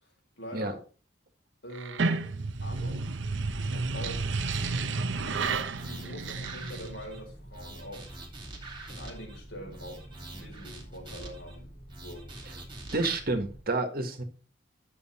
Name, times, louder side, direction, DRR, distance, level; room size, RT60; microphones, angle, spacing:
voice 1, 0.4-0.8 1.6-2.2 2.6-3.1 3.5-4.4 5.1-8.1 8.9-11.7 12.0-12.3, equal, 75° left, 4.6 m, -44 dB
sound 1, 1.7-7.1, right 3 dB, 80° right, 0.8 m, -31 dB
sound 2, 4.5-5.0 5.3-7.2 7.5-9.4 9.7-11.6 11.9-13.2, right 2 dB, 25° right, 2.5 m, -45 dB
sound 3, 5.1-13.6, right 1 dB, 35° left, 5.9 m, -48 dB
voice 2, 12.9-14.2, right 2 dB, 55° right, 1.7 m, -29 dB
9.9 x 6.9 x 4.2 m
head